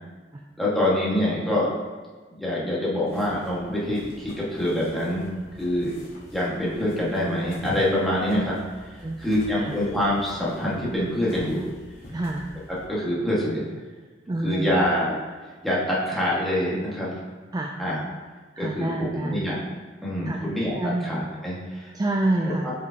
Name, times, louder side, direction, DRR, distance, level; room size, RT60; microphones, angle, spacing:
voice 1, 0.6-1.7 2.3-5.3 5.6-5.9 6.3-8.6 9.2-11.7 12.9-13.6 14.4-15.2 15.6-17.1 17.8-18.0 18.6-19.7 20.0-20.7 21.0-21.9 22.6-22.7, left 1 dB, ahead, -8 dB, 1.7 m, -25 dB
sound 1, 3.0-12.9, left 1 dB, 55° left, 2.0 m, -45 dB
voice 2, 12.1-12.4 14.3-14.8 17.5-17.8 18.5-19.5 20.2-20.4 20.7-21.1 21.9-22.7, right 2 dB, 20° right, 1 dB, 0.4 m, -27 dB
7.7 x 5.2 x 2.9 m, 1.4 s
head